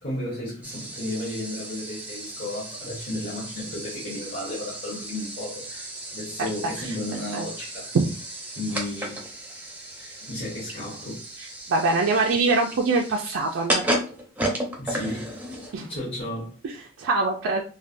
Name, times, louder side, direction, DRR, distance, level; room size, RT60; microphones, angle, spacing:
voice 1, 0.0-7.9 8.5-9.2 10.0-11.2 14.8-15.4 15.8-16.5, left 1 dB, 50° left, 1.2 m, -33 dB
Francis Coffeemaschine, 0.6-16.0, right 1 dB, 10° right, 0.5 m, -34 dB
voice 2, 11.7-13.9 15.7-15.8 16.6-17.6, right 3 dB, 75° right, 0.4 m, -23 dB
3.2 x 2.2 x 2.5 m
head